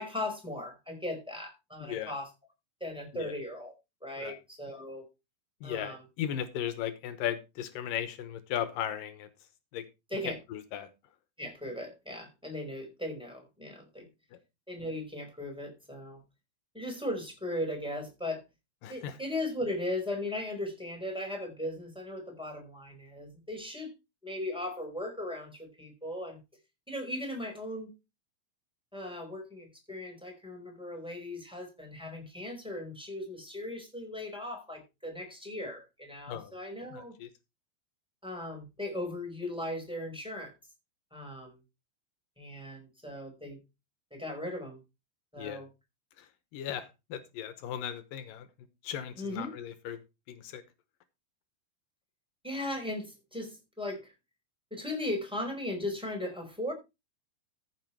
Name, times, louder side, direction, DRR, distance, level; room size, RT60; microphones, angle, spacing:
voice 1, 0.0-2.3 2.8-3.7 4.0-5.1 5.6-6.0 10.1-10.4 11.4-14.0 14.7-16.2 16.7-18.4 18.9-23.9 24.2-26.4 26.9-27.9 28.9-37.1 38.2-40.5 41.1-41.6 42.4-43.6 44.1-44.8 45.3-45.7 49.2-49.5 52.4-54.1 54.7-56.7, left 1 dB, ahead, 3 dB, 4.8 m, -37 dB
voice 2, 1.8-2.1 3.1-3.4 4.2-4.4 5.6-9.3 9.7-9.8 10.5-10.9 14.3-14.4 18.8-19.2 36.3-36.5 36.9-37.3 45.4-45.6 46.2-48.5 48.8-50.0 50.3-50.6, left 10 dB, 85° left, 12 dB, 2.7 m, -37 dB
14.5 x 6.6 x 4.5 m, 0.26 s
omnidirectional pair, 3.9 m